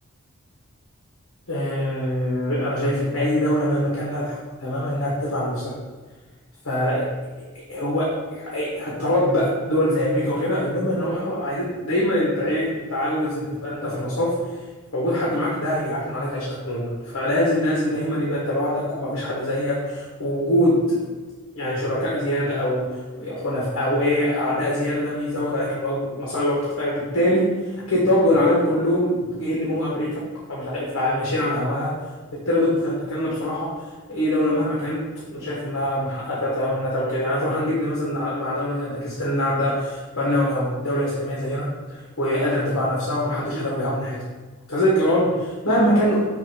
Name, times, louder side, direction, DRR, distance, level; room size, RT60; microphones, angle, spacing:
voice 1, 1.5-5.7 6.6-7.1 7.4-14.5 14.9-21.0 21.5-30.2 30.5-31.9 32.3-33.7 34.1-44.2 44.7-46.3, left 1 dB, 75° left, -6 dB, 1.4 m, -23 dB
6.3 x 2.7 x 5.6 m, 1.4 s
head